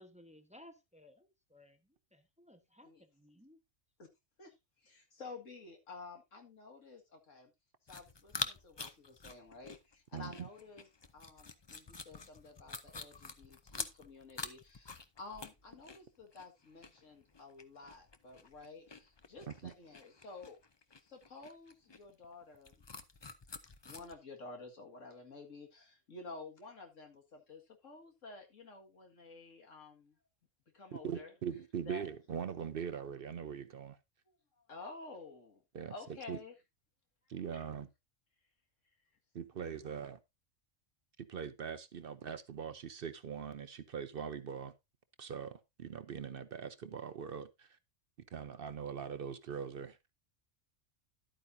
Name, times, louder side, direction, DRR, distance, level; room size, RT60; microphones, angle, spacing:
voice 1, 0.0-1.8 2.1-3.6, left 1 dB, 5° right, 1.0 m, -59 dB
voice 2, 4.4-7.5 7.8-10.9 11.1-20.6 21.0-22.8 23.8-30.2 30.7-31.3 31.9-32.1 34.3-35.6 35.9-36.5 37.5-37.6, left 3 dB, 90° left, 2.3 m, -51 dB
sound 1, 7.9-24.1, left 4 dB, 30° left, 0.5 m, -47 dB
voice 3, 10.1-10.5 19.5-19.7 30.9-34.0 35.7-35.9 36.3-36.4 37.3-37.9 39.3-40.2 41.2-44.7 45.2-47.8 48.3-50.1, right 7 dB, 55° right, 0.8 m, -42 dB
11.5 x 8.7 x 2.7 m
omnidirectional pair, 1.3 m